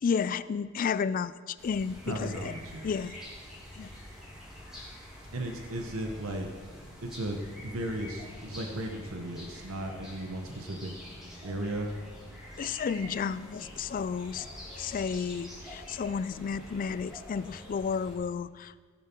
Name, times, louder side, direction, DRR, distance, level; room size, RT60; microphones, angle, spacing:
voice 1, 0.0-2.5 2.8-3.2 3.7-3.9 12.6-14.5 14.8-18.7, left 6 dB, 40° left, 17 dB, 0.3 m, -32 dB
sound 1, 1.6-18.2, equal, 5° right, 2.6 m, -46 dB
voice 2, 2.1-2.8 5.3-6.5 7.0-10.9 11.4-11.9, right 1 dB, 90° right, 3 dB, 1.1 m, -35 dB
16.5 x 7.0 x 4.5 m, 1.5 s
head